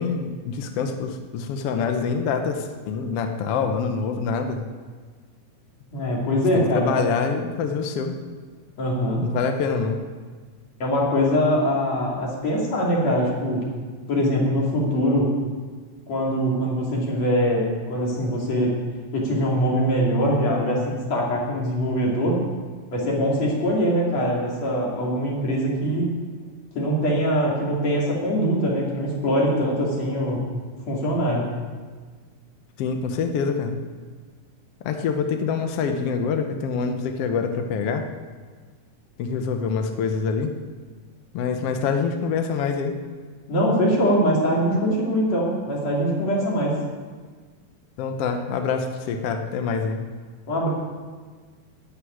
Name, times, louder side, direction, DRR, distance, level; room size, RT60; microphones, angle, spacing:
voice 1, 0.0-4.6 6.5-8.2 9.2-10.0 32.8-33.8 34.8-38.0 39.2-40.5 41.3-42.9 48.0-50.0, left 5 dB, 80° left, 5 dB, 1.3 m, -25 dB
voice 2, 5.9-7.0 8.8-9.2 10.8-13.7 14.1-15.3 16.1-18.8 19.1-22.4 22.9-26.1 26.8-30.5 30.9-31.5 43.5-46.8 50.5-50.7, equal, 50° left, -3 dB, 3.9 m, -22 dB
13.0 x 6.7 x 9.5 m, 1.5 s
omnidirectional pair, 4.0 m